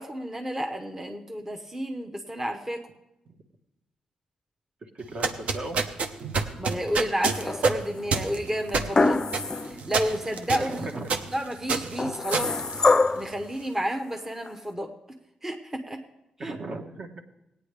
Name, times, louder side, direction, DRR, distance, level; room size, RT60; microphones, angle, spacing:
voice 1, 0.0-2.8 6.6-9.2 9.6-10.9 11.3-12.6 13.1-14.9 15.4-16.0 16.4-16.6, equal, 15° right, 4 dB, 0.9 m, -31 dB
voice 2, 4.9-5.8 10.6-11.2 16.4-17.2, right 2 dB, 50° right, 4 dB, 1.3 m, -37 dB
sound 1, 5.0-13.4, right 4 dB, 65° right, 0.9 m, -29 dB
sound 2, 7.3-7.9 8.9-9.8 10.2-10.3 12.0-13.3 14.5-14.6, left 3 dB, 30° left, 0.4 m, -24 dB
17.0 x 9.4 x 3.3 m, 0.91 s
cardioid pair, 75°, 2 cm